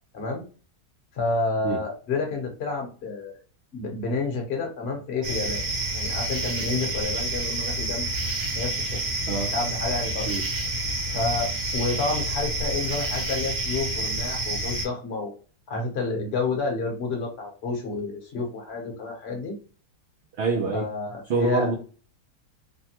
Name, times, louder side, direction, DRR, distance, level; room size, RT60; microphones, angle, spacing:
voice 1, 0.1-0.4 1.1-3.3 3.7-5.6 5.9-8.1 8.6-9.0 9.5-10.3 11.1-15.3 15.7-19.6 20.6-21.7, left 3 dB, 50° left, 2 dB, 1.0 m, -29 dB
sound 1, 5.2-14.8, right 1 dB, 80° right, 1.6 m, -28 dB
voice 2, 20.4-20.9 21.3-21.7, right 4 dB, 65° right, 0 dB, 0.7 m, -25 dB
3.2 x 2.1 x 2.8 m, 0.38 s
omnidirectional pair, 1.6 m